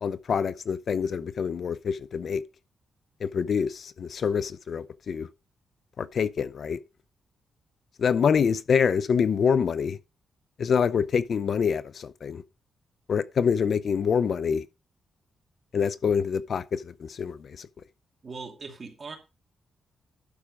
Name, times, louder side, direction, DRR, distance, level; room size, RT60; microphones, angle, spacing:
voice 1, 0.0-2.4 3.2-5.3 6.0-6.8 8.0-10.0 10.6-12.4 13.1-14.6 15.7-17.7, left 6 dB, 55° left, 0.6 m, -26 dB
voice 2, 18.2-19.2, right 4 dB, 35° right, 2.6 m, -40 dB
12.0 x 4.9 x 5.1 m
cardioid pair, 110°, 0 cm